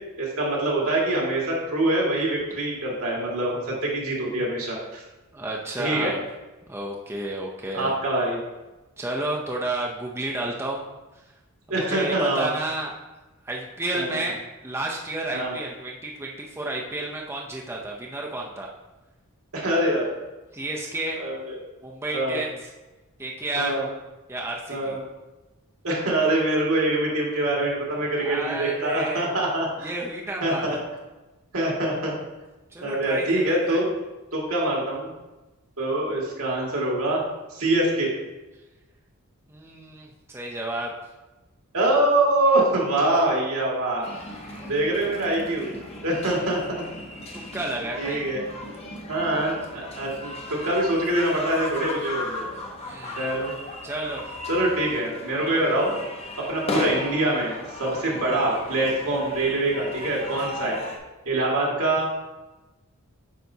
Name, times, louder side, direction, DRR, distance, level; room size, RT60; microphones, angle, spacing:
voice 1, 0.2-5.0 5.8-6.1 7.7-8.4 11.7-12.5 13.9-14.2 15.3-15.6 19.5-20.1 21.1-21.6 22.1-22.4 23.6-23.8 24.7-25.0 25.8-29.9 30.4-30.8 31.5-32.1 32.8-33.9 34.3-35.1 35.8-37.2 37.5-38.1 41.7-44.0 44.6-45.7 46.0-46.8 48.0-48.4 49.1-52.4 53.2-53.5 54.5-55.9 56.4-60.8 61.3-62.1, right 1 dB, 75° right, -4 dB, 2.0 m, -24 dB
voice 2, 5.3-6.2 6.7-7.9 9.0-10.8 11.8-12.9 13.5-18.7 20.5-21.2 21.8-22.7 23.2-23.8 24.3-25.0 28.2-29.3 29.8-30.8 32.7-33.8 39.5-40.9 44.4-44.7 45.8-46.4 47.3-48.2 51.8-51.9 52.8-53.3 53.8-54.3 55.2-55.3, right 2 dB, 10° right, -2 dB, 0.5 m, -31 dB
sound 1, 44.0-61.0, left 2 dB, 25° left, 0.8 m, -36 dB
8.9 x 5.1 x 2.7 m, 1.1 s
head